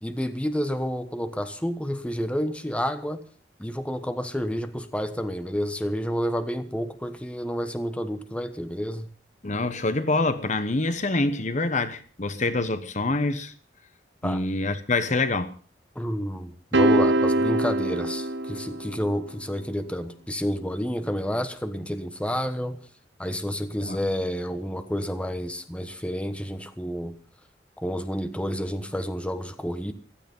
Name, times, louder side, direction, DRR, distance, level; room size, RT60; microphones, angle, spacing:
voice 1, 0.0-3.2 3.6-9.1 14.2-14.4 15.9-22.8 23.2-27.1 27.8-29.9, equal, 5° left, 1.2 m, -30 dB
voice 2, 9.4-13.5 14.2-15.6 23.8-24.0, left 2 dB, 45° left, 1.1 m, -26 dB
sound 1, 16.7-19.2, right 1 dB, 75° right, 1.4 m, -23 dB
15.5 x 13.0 x 5.4 m
head